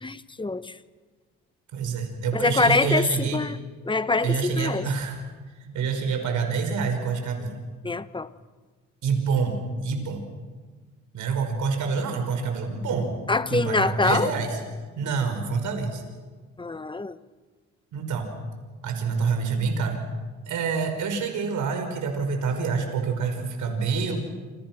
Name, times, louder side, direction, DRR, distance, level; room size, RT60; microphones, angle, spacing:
voice 1, 0.0-0.7 2.3-3.6 3.9-4.8 7.8-8.3 13.3-14.3 16.6-17.2, left 3 dB, 15° left, 13 dB, 1.1 m, -24 dB
voice 2, 1.7-3.4 4.2-5.2 5.6-7.6 9.0-10.2 11.1-13.2 13.5-14.6 15.0-16.0 17.9-18.3 18.8-20.0 20.5-24.2, right 5 dB, 75° right, 5 dB, 5.5 m, -27 dB
28.5 x 28.0 x 6.2 m, 1.4 s
cardioid pair, 90°, 30 cm